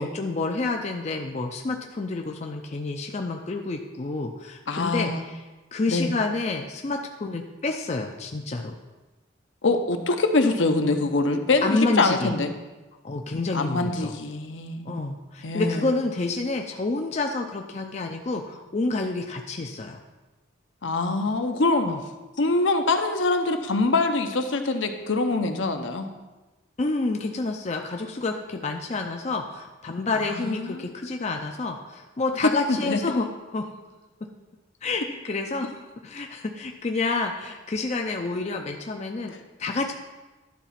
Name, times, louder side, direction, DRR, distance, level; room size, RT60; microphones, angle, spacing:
voice 1, 0.0-5.4 5.7-8.7 11.6-12.3 13.0-14.1 14.9-20.0 21.8-22.0 26.8-33.7 34.8-39.9, left 3 dB, 35° left, 3 dB, 0.5 m, -29 dB
voice 2, 4.7-5.2 5.9-6.2 9.6-12.5 13.5-14.9 15.4-15.8 20.8-21.9 22.4-26.1 30.3-30.8 32.4-33.0, left 3 dB, 70° left, 6 dB, 0.8 m, -24 dB
11.5 x 4.1 x 5.8 m, 1.2 s
head